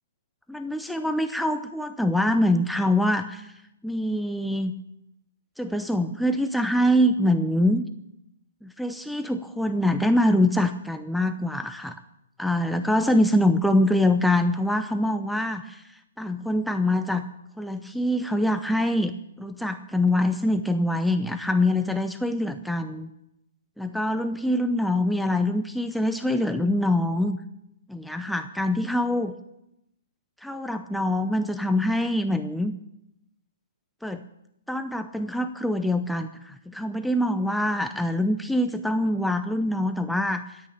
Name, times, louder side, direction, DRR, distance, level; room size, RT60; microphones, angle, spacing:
voice 1, 0.5-3.5 3.8-4.7 5.6-7.8 8.6-12.0 12.4-15.8 16.2-17.2 17.6-23.1 23.8-27.4 27.9-29.3 30.4-32.7 34.0-34.2 34.7-40.6, left 1 dB, ahead, 7 dB, 0.6 m, -24 dB
13.5 x 8.6 x 8.7 m, 0.85 s
hypercardioid pair, 135°, 0 cm